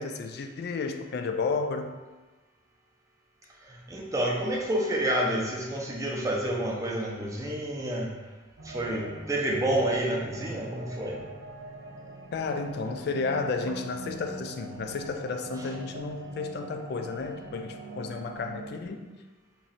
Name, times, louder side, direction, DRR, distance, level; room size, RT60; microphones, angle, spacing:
voice 1, 0.0-1.9 12.3-19.1, left 4 dB, 55° left, 6 dB, 0.3 m, -32 dB
voice 2, 3.9-8.1 8.6-11.2, right 1 dB, 15° right, -2 dB, 0.5 m, -29 dB
sound 1, 8.6-18.7, right 2 dB, 75° right, 0.5 m, -43 dB
3.0 x 2.6 x 4.0 m, 1.2 s
head